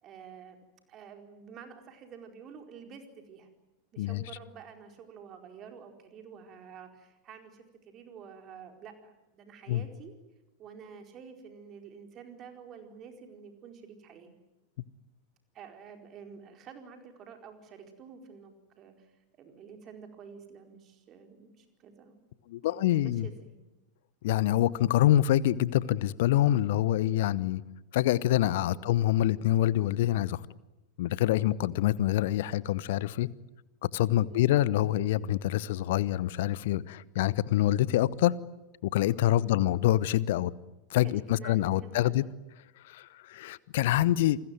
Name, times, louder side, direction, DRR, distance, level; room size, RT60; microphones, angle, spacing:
voice 1, 0.0-0.6 0.9-3.5 3.9-10.1 10.6-14.3 15.5-22.2 22.6-23.5 28.7-28.9 34.3-34.5 39.3-39.6 41.0-42.3, right 6 dB, 30° right, 4.5 m, -49 dB
voice 2, 22.5-23.3 24.2-27.6 27.9-30.4 31.0-33.3 33.8-38.4 38.8-40.5 40.9-42.2 42.9-44.4, left 13 dB, 55° left, 0.9 m, -26 dB
28.5 x 21.0 x 9.4 m
figure-of-eight pair, 90°, 0 cm